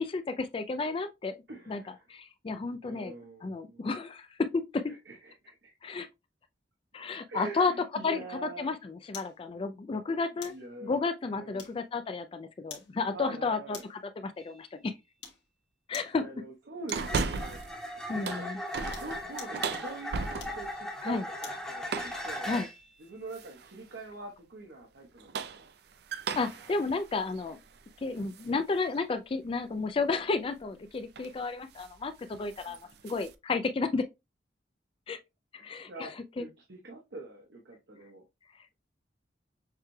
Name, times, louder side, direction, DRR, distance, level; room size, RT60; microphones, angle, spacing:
voice 1, 0.0-1.3 1.7-1.8 2.1-3.1 3.4-4.9 5.8-6.1 6.9-7.7 8.0-8.2 8.6-10.5 10.8-14.9 15.9-16.2 18.1-18.6 21.0-21.2 22.5-22.7 26.4-27.6 28.0-32.8 33.0-34.1 35.1-35.2 35.5-36.1 36.4-36.5, left 4 dB, 30° left, 0.3 m, -32 dB
voice 2, 1.5-2.0 2.8-3.9 4.9-5.9 7.3-8.7 10.4-11.0 11.4-11.7 13.1-13.9 16.2-18.5 19.0-22.5 23.0-25.7 28.2-28.3 32.6-33.1 35.6-38.2, right 3 dB, 80° right, 1.0 m, -45 dB
sound 1, 9.1-9.4 10.4-10.7 11.6-12.0 12.7-12.9 13.7-14.1 15.2-15.4 15.9-16.2 16.9-17.4 18.8-19.6 20.4-21.7 22.1-22.2, left 7 dB, 75° left, 1.5 m, -46 dB
sound 2, 14.4-14.6 16.9-22.9 26.6-26.8, left 1 dB, 5° left, 1.3 m, -39 dB
sound 3, 16.9-17.8 18.1-20.8 21.9-22.3 23.3-23.8 25.0-28.5 29.0-29.1 30.6-30.8 31.1-31.4 31.7-32.0 32.3-33.3, right 5 dB, 65° right, 0.5 m, -37 dB
6.6 x 3.2 x 2.2 m
head